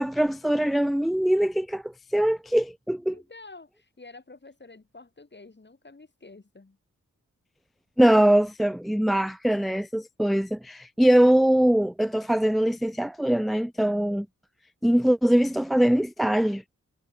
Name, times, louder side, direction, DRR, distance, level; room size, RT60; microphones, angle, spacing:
voice 1, 0.0-3.1 8.0-14.3 14.8-16.6, right 1 dB, ahead, 0.4 m, -22 dB
voice 2, 3.1-6.8, left 3 dB, 35° left, 5.1 m, -49 dB
cardioid pair, 55°, 31 cm